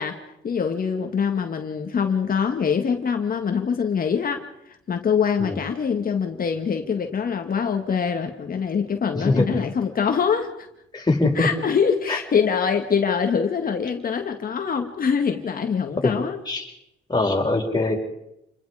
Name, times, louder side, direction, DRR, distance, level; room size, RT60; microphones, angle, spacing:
voice 1, 0.0-10.7 11.4-16.4, left 6 dB, 45° left, 4 dB, 2.0 m, -24 dB
voice 2, 10.9-11.5 12.1-12.2 16.0-16.1 16.5-16.7 17.1-18.0, left 2 dB, 20° left, 0 dB, 5.9 m, -22 dB
28.5 x 21.5 x 5.1 m, 0.84 s
cardioid pair, 90°, 20 cm